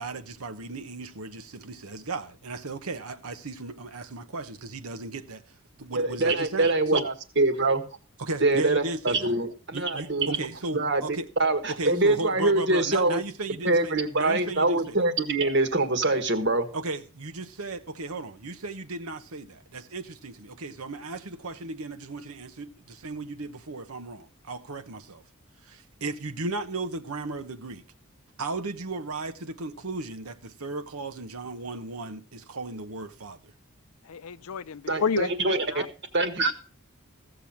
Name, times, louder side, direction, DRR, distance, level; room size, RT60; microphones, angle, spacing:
voice 1, 0.0-5.4 5.8-7.1 8.2-9.4 9.7-11.3 11.7-15.0 16.7-25.2 25.6-27.8 28.4-33.5, right 2 dB, 85° right, 1.0 m, -35 dB
voice 2, 5.9-7.8 8.4-10.4 10.7-11.0 11.4-13.2 13.6-16.7 34.9-35.8 36.1-36.5, right 2 dB, 50° right, 1.6 m, -24 dB
voice 3, 34.1-35.9, left 6 dB, 90° left, 0.6 m, -30 dB
15.5 x 6.9 x 5.8 m
head